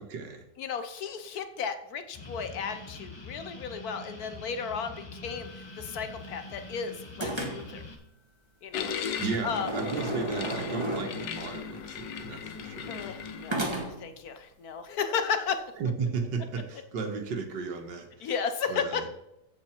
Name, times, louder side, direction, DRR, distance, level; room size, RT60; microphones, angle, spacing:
voice 1, 0.0-0.4 9.2-13.0 15.8-18.3 18.7-19.1, right 5 dB, 80° right, 5 dB, 2.0 m, -34 dB
voice 2, 0.6-7.8 8.6-8.9 9.4-9.7 12.9-15.7 18.2-19.1, left 6 dB, 65° left, 9 dB, 1.2 m, -34 dB
sound 1, 2.1-7.9, left 3 dB, 20° left, 1.0 m, -45 dB
sound 2, 5.3-6.7 7.2-7.9 9.3-11.4 13.5-14.2, right 1 dB, 15° right, 1.4 m, -35 dB
sound 3, 8.7-13.7, left 7 dB, 90° left, 1.6 m, -37 dB
15.0 x 5.0 x 4.5 m, 0.87 s
omnidirectional pair, 1.9 m